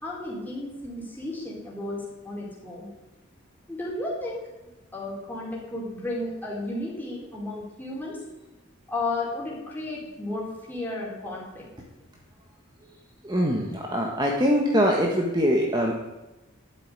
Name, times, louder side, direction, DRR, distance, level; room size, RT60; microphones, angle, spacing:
voice 1, 0.0-2.9 3.7-4.5 4.9-8.2 8.9-11.7, left 2 dB, 10° left, -5 dB, 4.4 m, -33 dB
voice 2, 13.2-15.9, equal, 20° right, 0 dB, 1.4 m, -23 dB
12.5 x 8.0 x 9.6 m, 1.0 s
head